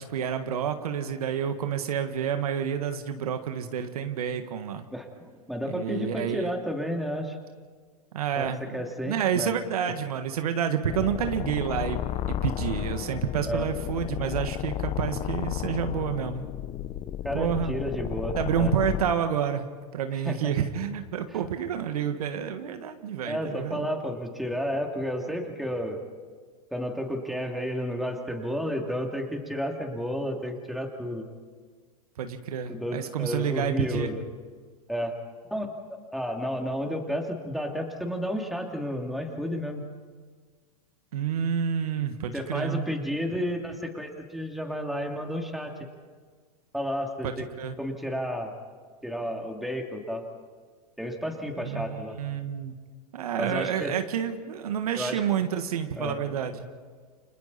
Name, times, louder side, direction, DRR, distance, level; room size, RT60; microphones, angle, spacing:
voice 1, 0.0-4.8 5.6-6.5 8.1-8.7 9.0-16.5 17.3-17.8 18.3-23.9 32.2-34.1 41.1-42.9 47.2-47.7 51.6-52.7 53.1-56.6, right 8 dB, 75° right, 8 dB, 1.6 m, -29 dB
voice 2, 4.9-7.4 8.3-8.5 8.7-9.5 13.4-13.7 17.2-18.7 20.1-20.5 23.3-26.0 26.7-31.2 32.7-34.2 34.9-35.2 35.5-35.7 36.1-39.8 42.3-45.7 46.7-47.5 47.8-48.5 49.0-50.2 51.0-52.2 53.4-53.9 54.9-55.2 56.0-56.2, equal, ahead, 2 dB, 2.8 m, -31 dB
sound 1, 10.8-19.1, left 12 dB, 35° left, 0.8 m, -33 dB
30.0 x 26.0 x 4.2 m, 1.5 s
hypercardioid pair, 105°, 19 cm